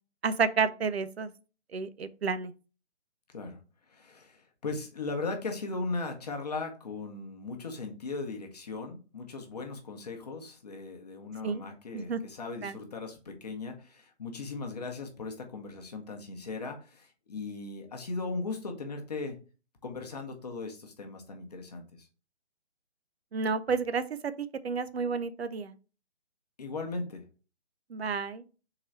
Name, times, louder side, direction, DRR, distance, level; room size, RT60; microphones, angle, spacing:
voice 1, 0.2-1.3 1.7-2.5 11.4-11.6 11.9-12.2 12.6-12.8 23.3-25.7 27.9-28.4, right 5 dB, 65° right, 12 dB, 0.6 m, -30 dB
voice 2, 3.9-19.3 19.8-22.1 26.6-27.2, left 3 dB, 35° left, 3 dB, 0.8 m, -38 dB
3.8 x 3.0 x 4.3 m, 0.34 s
figure-of-eight pair, 155°, 34 cm